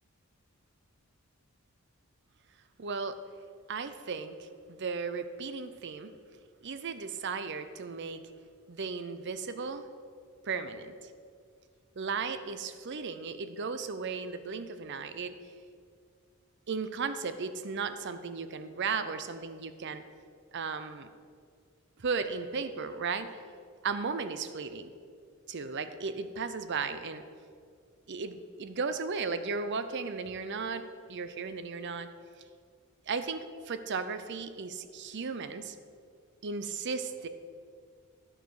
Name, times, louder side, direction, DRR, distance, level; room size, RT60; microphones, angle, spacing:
voice 1, 2.8-3.2 3.7-6.1 6.6-8.2 8.7-9.9 10.4-11.1 12.0-15.4 16.7-20.0 20.5-21.1 22.0-23.4 23.8-24.9 25.5-27.2 28.1-32.1 33.1-35.8 36.4-37.3, right 5 dB, 55° right, 11 dB, 0.6 m, -35 dB
11.5 x 5.0 x 6.3 m, 2.2 s
head